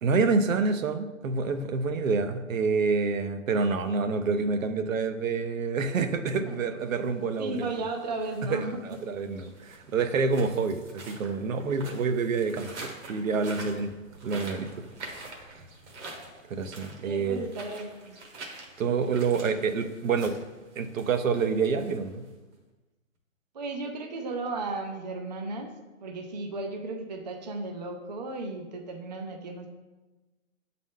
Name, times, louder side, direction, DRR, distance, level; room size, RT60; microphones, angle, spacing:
voice 1, 0.0-7.7 8.5-13.9 14.2-14.7 16.5-17.4 18.8-20.3 20.8-22.2, right 4 dB, 75° right, 8 dB, 0.7 m, -27 dB
sound 1, 6.8-22.5, right 2 dB, 60° right, 1.3 m, -46 dB
voice 2, 7.4-8.8 17.0-18.2 23.5-25.7 26.0-29.7, right 3 dB, 35° right, 3 dB, 0.4 m, -35 dB
7.3 x 3.9 x 3.7 m, 1.2 s
hypercardioid pair, 155°, 40 cm